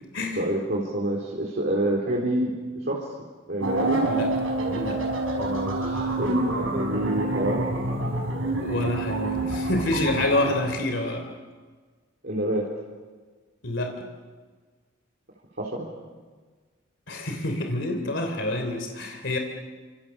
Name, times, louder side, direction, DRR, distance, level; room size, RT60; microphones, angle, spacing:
voice 1, 0.3-2.6 2.8-3.1 3.5-4.0 5.4-7.7 12.2-12.7 15.6-15.9, right 1 dB, 55° right, -3 dB, 4.1 m, -27 dB
sound 1, 3.6-10.7, right 2 dB, 90° right, 6.7 m, -27 dB
voice 2, 8.6-11.2 13.6-14.1 17.1-19.4, left 1 dB, 65° left, 4 dB, 3.3 m, -27 dB
29.0 x 26.5 x 7.2 m, 1.4 s
head